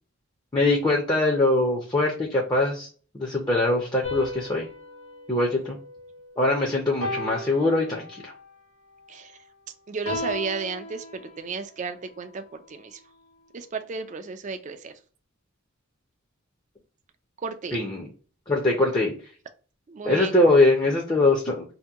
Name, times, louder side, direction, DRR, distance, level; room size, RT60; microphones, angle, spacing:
voice 1, 0.5-2.9 3.1-4.7 5.3-5.8 6.4-8.3 17.7-18.1 18.5-19.1 20.0-21.6, left 2 dB, 20° left, -1 dB, 0.5 m, -22 dB
sound 1, 4.0-6.4 7.0-8.5 10.0-11.7, left 2 dB, 65° left, 1.2 m, -36 dB
voice 2, 9.9-13.0 13.5-14.9 17.4-17.8 19.9-20.4, right 5 dB, 35° right, 8 dB, 0.3 m, -33 dB
2.8 x 2.2 x 3.4 m, 0.40 s
head